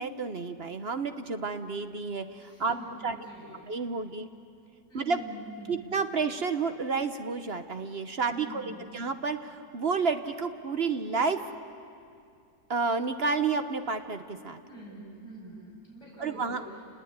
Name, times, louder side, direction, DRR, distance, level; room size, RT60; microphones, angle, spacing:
voice 1, 0.0-2.7 3.0-3.2 3.7-4.3 4.9-5.2 5.7-11.4 12.7-14.6 16.2-16.6, right 4 dB, 45° right, 9 dB, 0.9 m, -30 dB
voice 2, 2.4-3.6 4.9-5.8 8.3-8.9 14.6-16.8, right 1 dB, 40° left, -7 dB, 8.5 m, -45 dB
30.0 x 20.0 x 9.5 m, 2.4 s
omnidirectional pair, 1.9 m